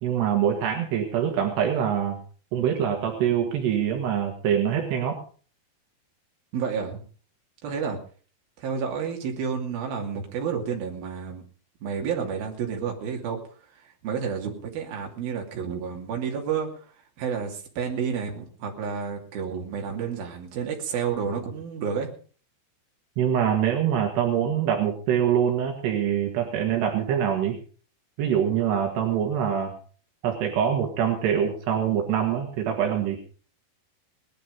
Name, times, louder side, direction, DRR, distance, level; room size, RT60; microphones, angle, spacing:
voice 1, 0.0-2.2 2.5-5.2 23.2-27.6 28.2-29.7 30.2-33.2, right 9 dB, 80° right, 3 dB, 3.9 m, -24 dB
voice 2, 6.5-7.0 7.6-8.0 8.6-11.4 11.8-13.4 13.7-16.9 17.2-22.1, right 6 dB, 65° right, 2 dB, 4.3 m, -30 dB
19.5 x 11.0 x 5.2 m, 0.42 s
omnidirectional pair, 4.8 m